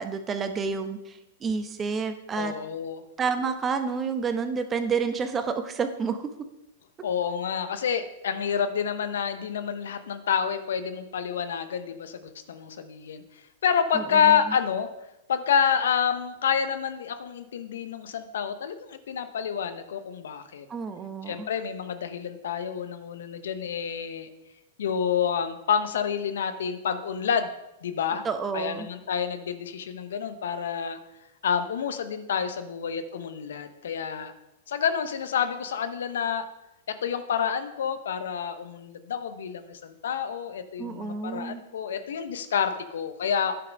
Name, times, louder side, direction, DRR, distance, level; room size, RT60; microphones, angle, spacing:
voice 1, 0.0-2.5 3.2-6.3 13.9-14.4 20.7-21.5 28.2-28.9 40.8-41.6, right 5 dB, 20° right, 8 dB, 1.0 m, -29 dB
voice 2, 2.3-3.0 7.0-13.2 13.6-14.9 15.3-20.7 21.3-24.3 24.8-27.5 27.8-28.2 28.5-31.0 31.4-34.3 34.7-36.5 37.0-43.6, left 7 dB, 70° left, 10 dB, 0.9 m, -28 dB
9.8 x 5.8 x 5.3 m, 0.91 s
hypercardioid pair, 105°, 0 cm